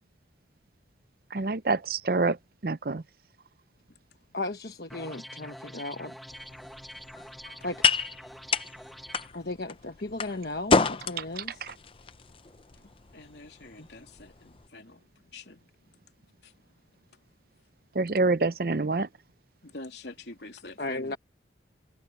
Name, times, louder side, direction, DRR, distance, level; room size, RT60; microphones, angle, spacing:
voice 1, 1.3-2.4 2.6-3.0 11.2-11.7 17.9-19.1, right 3 dB, 55° right, 0.7 m, -27 dB
voice 2, 4.3-6.1 7.6-7.8 9.3-11.6 20.8-21.2, left 2 dB, 55° left, 1.2 m, -35 dB
sound 1, 4.9-9.3, equal, ahead, 1.4 m, -45 dB
sound 2, 6.3-14.7, left 4 dB, 30° left, 0.5 m, -31 dB
voice 3, 13.1-15.7 16.4-16.5 19.6-21.2, left 2 dB, 75° left, 3.0 m, -46 dB
head